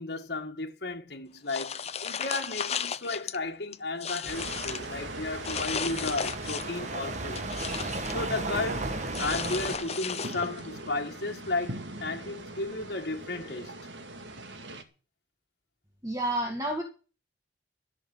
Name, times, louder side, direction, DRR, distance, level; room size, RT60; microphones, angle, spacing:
voice 1, 0.0-7.4 8.1-13.7, left 3 dB, 60° left, 1.9 m, -34 dB
sound 1, 1.5-3.4 3.7-4.9 5.4-6.8 7.1-8.2 9.1-10.7, left 7 dB, 35° left, 0.7 m, -34 dB
sound 2, 4.2-9.8, right 2 dB, 40° right, 1.7 m, -36 dB
sound 3, 4.3-14.8, right 2 dB, 90° right, 2.3 m, -41 dB
voice 2, 16.0-16.8, right 1 dB, 20° right, 2.1 m, -29 dB
14.0 x 6.7 x 9.7 m
head